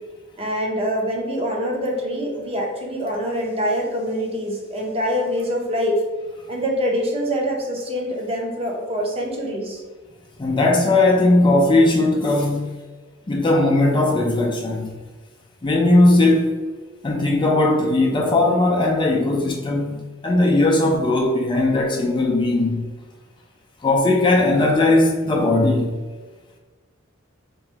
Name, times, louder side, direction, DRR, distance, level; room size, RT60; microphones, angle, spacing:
voice 1, 0.4-6.0 6.5-9.8, equal, 30° right, 0 dB, 0.7 m, -25 dB
voice 2, 10.4-12.8 13.3-15.0 15.6-16.5 17.0-22.9 23.8-26.0, left 2 dB, 25° left, -1 dB, 0.4 m, -18 dB
2.9 x 2.6 x 4.4 m, 1.3 s
head